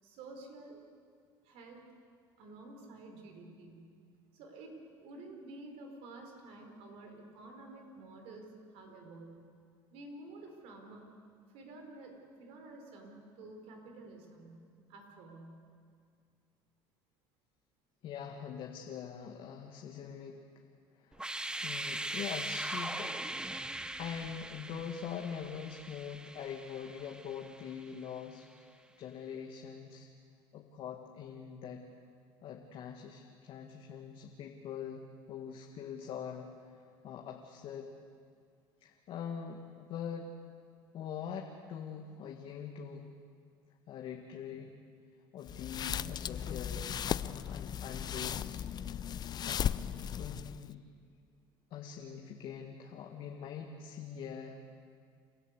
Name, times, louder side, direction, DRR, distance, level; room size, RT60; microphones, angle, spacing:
voice 1, 0.0-0.8 1.4-1.8 2.4-3.9 4.3-9.5 9.9-11.0 11.5-14.6 14.9-15.6, right 2 dB, 70° right, 3 dB, 5.0 m, -50 dB
voice 2, 18.0-20.4 21.0-21.3 21.6-23.2 23.5-23.6 24.0-30.1 30.5-31.8 32.4-36.5 37.0-37.9 38.8-40.3 40.9-43.1 43.9-44.7 45.3-46.9 47.2-48.6 49.5-49.6 50.2-50.8 51.7-54.6, left 7 dB, 55° left, 2 dB, 2.0 m, -43 dB
sound 1, 21.1-28.0, right 1 dB, 10° right, 1.0 m, -40 dB
sound 2, 45.4-50.7, left 9 dB, 40° left, 0.6 m, -36 dB
29.0 x 13.5 x 8.4 m, 2.2 s
supercardioid pair, 85°, 11 cm